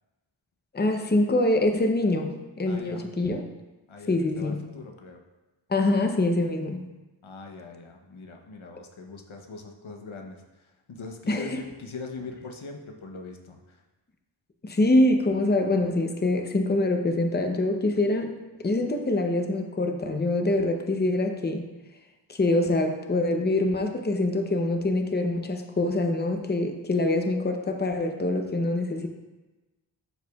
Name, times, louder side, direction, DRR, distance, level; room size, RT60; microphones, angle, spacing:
voice 1, 0.7-3.4 4.1-4.6 5.7-6.9 11.3-11.5 14.6-21.7 22.3-29.1, left 2 dB, 20° left, 4 dB, 0.7 m, -25 dB
voice 2, 2.7-3.1 3.9-5.2 7.2-13.8, left 3 dB, 80° left, 3 dB, 0.9 m, -42 dB
12.0 x 4.8 x 2.3 m, 1.1 s
wide cardioid pair, 55°, 47 cm